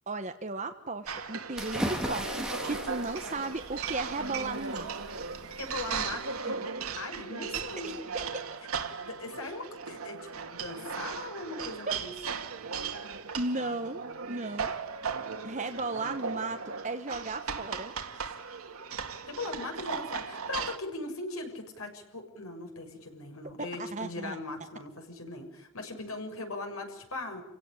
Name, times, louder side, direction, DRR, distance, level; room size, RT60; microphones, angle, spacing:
voice 1, 0.1-4.9 7.8-8.6 13.3-14.7 15.4-17.9 23.8-24.4, right 2 dB, 35° right, 6 dB, 1.2 m, -35 dB
sound 1, 1.1-20.8, right 5 dB, 90° right, 2.2 m, -37 dB
sound 2, 1.6-6.4, equal, 5° right, 3.3 m, -38 dB
voice 2, 5.6-7.9 9.0-12.1 13.5-13.8 19.2-27.4, left 2 dB, 85° left, 4 dB, 6.8 m, -39 dB
29.0 x 17.5 x 10.0 m, 0.84 s
head